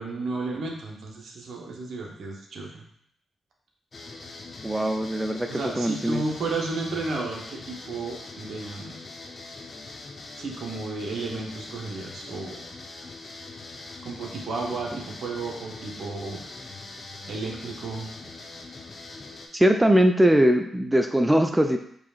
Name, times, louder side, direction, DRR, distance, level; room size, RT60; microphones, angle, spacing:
voice 1, 0.0-2.8 5.5-9.1 10.4-12.6 14.0-16.4 17.3-18.1, right 3 dB, 65° right, 0 dB, 0.8 m, -33 dB
sound 1, 3.9-19.5, left 3 dB, 45° left, 0.6 m, -42 dB
voice 2, 4.6-6.2 19.5-21.8, equal, 10° right, 5 dB, 0.3 m, -21 dB
4.8 x 2.7 x 2.4 m, 0.71 s
hypercardioid pair, 40°, 0 cm